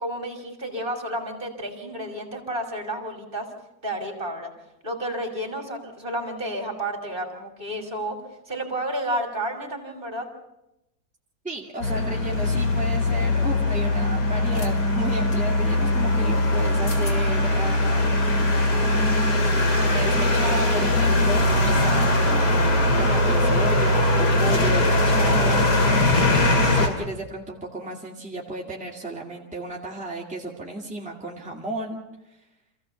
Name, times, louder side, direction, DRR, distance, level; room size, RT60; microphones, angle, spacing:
voice 1, 0.0-3.5 3.8-4.5 4.8-8.2 8.5-10.3, right 1 dB, 30° right, 5 dB, 3.2 m, -31 dB
voice 2, 11.4-18.1 18.5-26.4 26.7-32.0, right 1 dB, 5° right, -2 dB, 2.4 m, -33 dB
sound 1, 11.8-26.9, left 1 dB, 85° left, 3.0 m, -21 dB
sound 2, 12.5-12.7 14.4-14.7 15.3-15.4 16.6-16.7 16.9-17.2, left 3 dB, 60° left, 2.8 m, -41 dB
27.0 x 15.5 x 7.0 m, 0.90 s
omnidirectional pair, 1.7 m